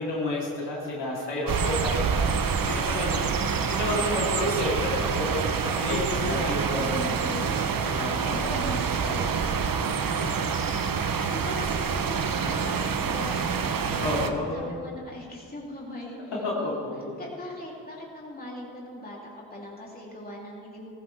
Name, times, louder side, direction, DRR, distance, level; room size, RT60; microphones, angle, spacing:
voice 1, 0.0-3.1 3.5-6.0 6.3-9.8 10.2-10.3 14.0-14.8 16.3-17.1, left 1 dB, 85° left, -5 dB, 3.4 m, -31 dB
sound 1, 1.5-14.3, right 6 dB, 55° right, 0.9 m, -27 dB
voice 2, 2.6-3.4 5.8-6.6 8.3-8.8 11.3-16.2 16.6-16.9 17.2-20.9, left 1 dB, 20° left, -4 dB, 3.2 m, -39 dB
15.0 x 14.5 x 3.5 m, 2.3 s
cardioid pair, 60°, 40 cm